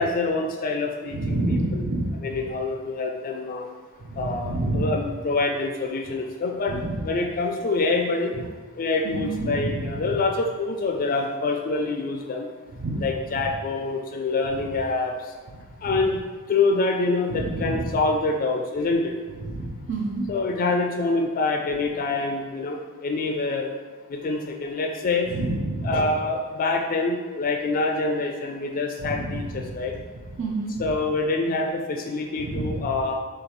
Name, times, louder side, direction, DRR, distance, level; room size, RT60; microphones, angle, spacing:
voice 1, 0.0-1.8 2.2-3.7 4.2-8.3 8.8-12.5 13.0-15.2 15.8-16.2 16.5-19.1 20.3-23.7 24.1-25.3 25.8-30.0 30.8-33.2, left 3 dB, 40° left, 3 dB, 0.4 m, -26 dB
voice 2, 1.1-2.4 4.0-5.0 6.7-7.0 9.0-10.2 12.8-13.0 15.8-16.0 17.3-18.0 19.5-20.3 25.3-26.0 29.0-29.7 29.9-30.0 30.4-30.8 32.4-32.9, right 2 dB, 55° right, -1 dB, 0.6 m, -28 dB
6.4 x 2.4 x 3.0 m, 1.5 s
head